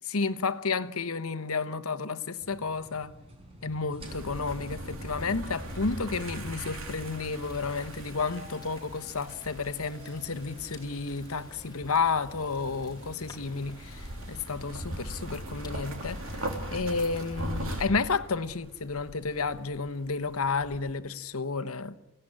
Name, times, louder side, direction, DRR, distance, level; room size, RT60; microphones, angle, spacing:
voice 1, 0.0-3.2 3.6-22.0, left 4 dB, 80° left, 1.1 m, -31 dB
sound 1, 2.4-17.9, equal, 25° right, 4.7 m, -52 dB
sound 2, 4.0-20.9, right 1 dB, 70° right, 3.3 m, -40 dB
Fire, 5.7-17.8, left 1 dB, 20° left, 4.1 m, -51 dB
27.0 x 17.0 x 10.0 m
head